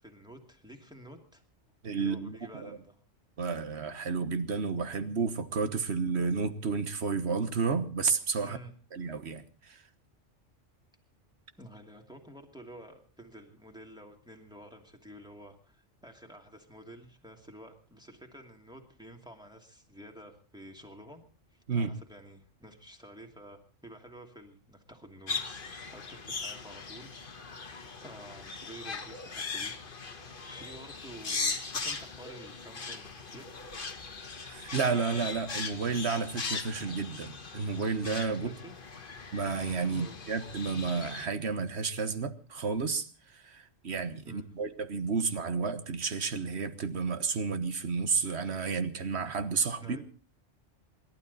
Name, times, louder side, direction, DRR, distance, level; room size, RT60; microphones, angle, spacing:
voice 1, 0.0-1.4 2.0-3.0 8.4-8.7 11.6-21.2 21.5-29.7 30.1-33.5 38.3-38.8 39.9-40.2 44.3-44.5 49.8-50.0, right 1 dB, 5° right, 2.5 m, -50 dB
voice 2, 1.8-2.7 3.4-8.6 8.9-9.8 21.7-21.9 34.4-38.5 39.3-50.1, right 5 dB, 65° right, 1.5 m, -31 dB
sound 1, 25.3-41.3, left 4 dB, 45° left, 1.5 m, -39 dB
27.5 x 12.0 x 4.1 m
omnidirectional pair, 1.2 m